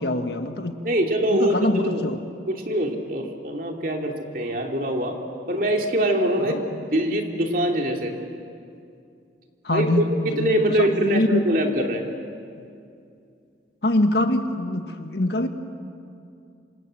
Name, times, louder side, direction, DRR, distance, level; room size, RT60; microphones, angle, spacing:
voice 1, 0.0-0.7 1.3-2.2 6.4-6.9 9.6-11.4 12.6-12.7 13.8-15.5, left 1 dB, 60° left, 6 dB, 1.6 m, -24 dB
voice 2, 0.8-2.0 2.5-5.2 5.5-6.6 6.9-8.1 9.7-9.9 10.4-12.0, right 1 dB, 45° right, 2 dB, 2.8 m, -23 dB
27.5 x 26.5 x 7.7 m, 2.5 s
head